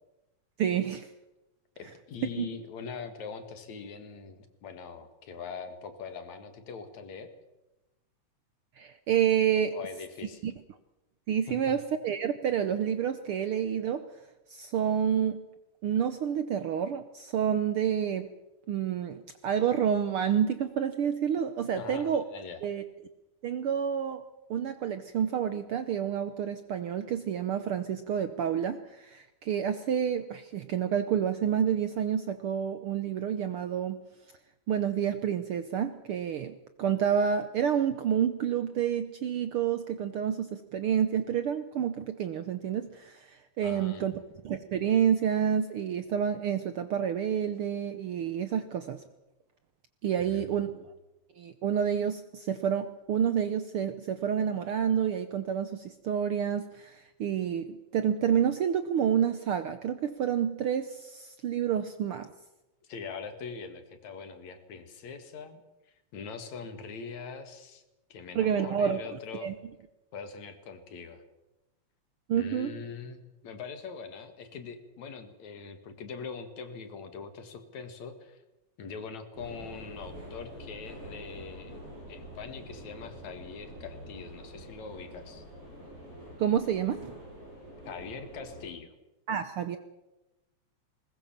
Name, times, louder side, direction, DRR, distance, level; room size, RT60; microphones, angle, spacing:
voice 1, 0.6-1.1 2.4-2.5 8.8-9.7 10.4-10.5 11.3-14.1 14.5-15.4 15.8-18.3 18.7-22.2 22.6-22.8 23.4-24.2 24.5-34.0 34.7-44.1 44.4-49.0 50.0-50.7 51.4-62.3 68.3-69.0 69.4-69.5 72.3-72.7 86.4-87.1 89.3-89.8, right 8 dB, 70° right, 11 dB, 1.4 m, -29 dB
voice 2, 1.8-7.3 9.7-10.4 11.5-11.8 21.8-22.6 43.6-44.2 50.2-50.9 62.9-65.6 66.1-67.8 68.1-69.5 70.1-71.2 72.4-78.4 78.8-81.8 82.1-85.4 87.8-88.9, left 5 dB, 70° left, 8 dB, 3.2 m, -42 dB
sound 1, 79.3-88.7, equal, 45° right, 8.9 m, -46 dB
20.0 x 20.0 x 7.4 m, 0.98 s
omnidirectional pair, 3.3 m